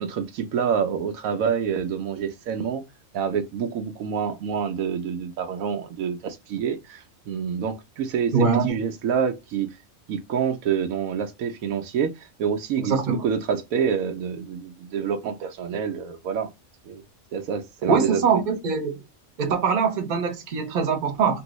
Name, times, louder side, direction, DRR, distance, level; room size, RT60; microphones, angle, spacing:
voice 1, 0.0-2.8 3.1-8.3 8.6-9.8 10.1-16.5 16.9-17.0 17.3-18.2, right 7 dB, 85° right, 1.0 m, -27 dB
voice 2, 8.3-8.8 12.8-13.2 17.9-19.0 19.4-21.4, right 5 dB, 40° right, 0.8 m, -23 dB
3.0 x 2.6 x 3.0 m
omnidirectional pair, 1.4 m